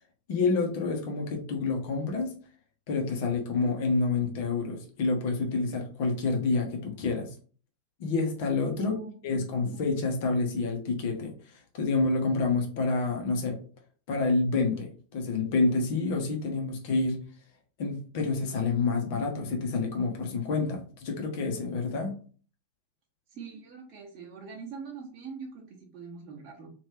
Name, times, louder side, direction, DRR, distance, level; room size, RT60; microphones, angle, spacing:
voice 1, 0.3-2.3 2.9-7.3 8.0-8.9 9.2-11.3 11.7-13.6 14.1-17.2 17.8-22.1, left 3 dB, 50° left, 2 dB, 1.0 m, -28 dB
voice 2, 8.7-9.9 23.3-26.7, right 5 dB, 30° right, -4 dB, 1.0 m, -43 dB
3.1 x 2.7 x 3.3 m, 0.41 s
figure-of-eight pair, 90°, 0 cm